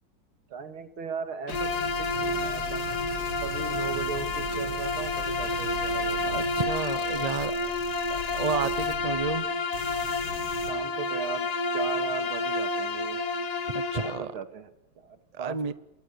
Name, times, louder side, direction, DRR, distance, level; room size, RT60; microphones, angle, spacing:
voice 1, 0.5-2.9 3.4-6.4 7.0-7.3 10.6-13.2 13.9-15.7, right 6 dB, 85° right, 10 dB, 2.9 m, -38 dB
Bowed string instrument, 1.5-14.2, left 3 dB, 50° left, 1.9 m, -30 dB
sound 1, 1.5-9.4 9.7-10.7, right 2 dB, 60° right, 4.7 m, -40 dB
voice 2, 6.2-7.6 8.1-9.5 13.7-14.3 15.3-15.7, right 5 dB, 35° right, 15 dB, 0.6 m, -31 dB
27.0 x 22.5 x 7.0 m, 0.87 s
omnidirectional pair, 2.3 m